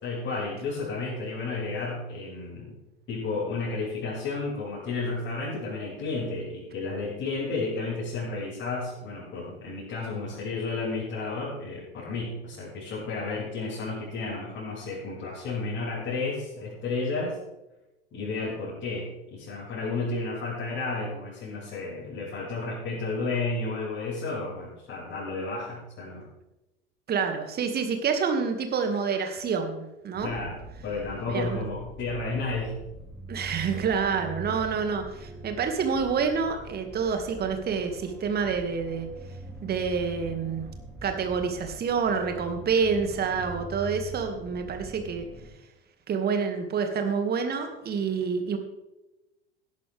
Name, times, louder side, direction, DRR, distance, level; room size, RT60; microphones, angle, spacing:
voice 1, 0.0-2.8 3.1-17.4 18.1-26.2 30.2-32.7, left 3 dB, 35° left, -7 dB, 6.0 m, -32 dB
voice 2, 27.1-30.3 31.3-31.6 33.3-39.1 39.6-40.7 41.0-45.3 46.1-48.6, right 6 dB, 30° right, 5 dB, 2.2 m, -28 dB
sound 1, 30.1-45.5, right 2 dB, 5° left, 2.5 m, -43 dB
18.0 x 11.5 x 3.6 m, 0.97 s
figure-of-eight pair, 75°, 31 cm